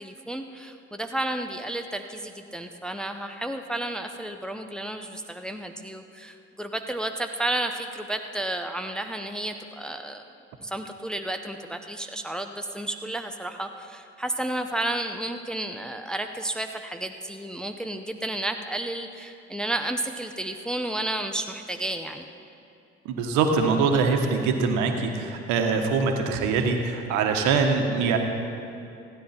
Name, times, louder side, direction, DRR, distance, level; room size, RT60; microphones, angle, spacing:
voice 1, 0.0-10.2 10.6-22.3, right 1 dB, ahead, 5 dB, 0.7 m, -32 dB
voice 2, 23.0-28.2, right 4 dB, 65° right, 4 dB, 1.4 m, -23 dB
15.5 x 9.7 x 4.4 m, 2.7 s
hypercardioid pair, 60°, 32 cm